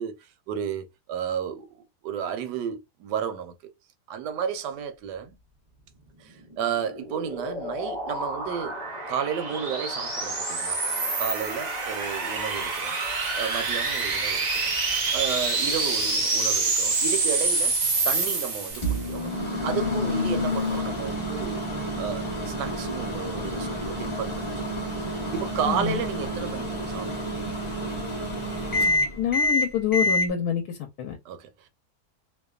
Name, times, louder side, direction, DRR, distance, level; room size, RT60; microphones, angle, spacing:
voice 1, 0.0-1.8 2.0-3.5 4.1-5.4 6.2-10.8 11.2-13.0 13.3-14.7 15.1-17.8 18.0-19.3 19.6-21.6 22.0-24.6 25.0-27.5 31.2-31.7, right 8 dB, 90° right, 1.2 m, -32 dB
sound 1, 6.5-19.2, right 3 dB, 70° right, 0.4 m, -27 dB
Microwave oven, 18.7-30.3, left 1 dB, 25° left, 0.8 m, -28 dB
voice 2, 25.7-26.0 29.2-31.2, left 9 dB, 75° left, 1.1 m, -27 dB
2.9 x 2.2 x 2.3 m
omnidirectional pair, 1.8 m